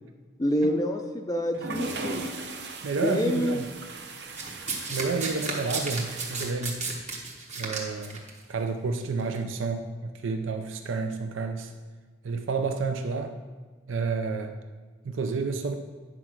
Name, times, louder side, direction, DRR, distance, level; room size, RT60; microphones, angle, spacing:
voice 1, 0.4-2.2 3.0-3.7, equal, 20° left, 4 dB, 0.4 m, -27 dB
sound 1, 1.5-6.5, right 3 dB, 55° right, 0.8 m, -38 dB
voice 2, 2.8-3.6 4.9-6.9 7.6-8.2 8.5-11.7 12.2-13.3 13.9-14.5 15.0-15.7, right 4 dB, 85° right, 7 dB, 0.5 m, -30 dB
Domestic sounds home sounds, 4.4-8.3 9.2-9.4, right 4 dB, 35° right, 1.2 m, -33 dB
9.8 x 4.5 x 5.9 m, 1.5 s
head